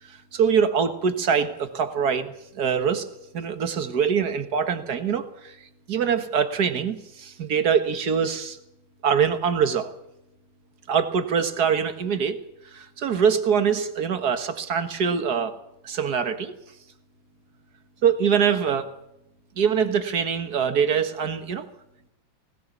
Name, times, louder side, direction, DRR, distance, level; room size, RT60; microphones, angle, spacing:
voice 1, 0.1-3.1 3.3-5.6 5.9-8.6 9.0-9.9 10.9-12.4 12.7-15.6 15.8-16.5 18.0-18.9 19.6-21.7, right 7 dB, 50° right, 9 dB, 2.0 m, -24 dB
19.5 x 19.0 x 7.2 m, 0.85 s
omnidirectional pair, 2.2 m